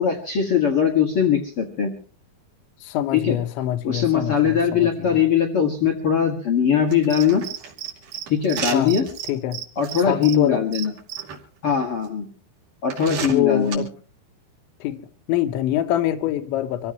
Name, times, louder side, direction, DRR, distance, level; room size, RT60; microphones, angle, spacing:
voice 1, 0.0-1.9 3.1-3.4 3.8-7.4 8.3-9.0 9.7-10.9 11.6-12.3 12.8-13.9, left 7 dB, 60° left, 1.5 m, -21 dB
voice 2, 2.8-5.2 8.7-8.9 9.3-9.6 10.0-10.7 13.3-13.9 14.8-15.0 15.3-16.9, left 12 dB, 80° left, 3.3 m, -24 dB
sound 1, 6.9-9.3 9.8-10.0 10.8-11.4 12.0-12.1 12.9-13.8, right 6 dB, 55° right, 4.1 m, -33 dB
Cricket, 7.1-8.2 8.5-8.6 8.9-10.4 10.7-11.2, right 13 dB, 75° right, 3.4 m, -33 dB
25.5 x 16.0 x 3.0 m
omnidirectional pair, 5.5 m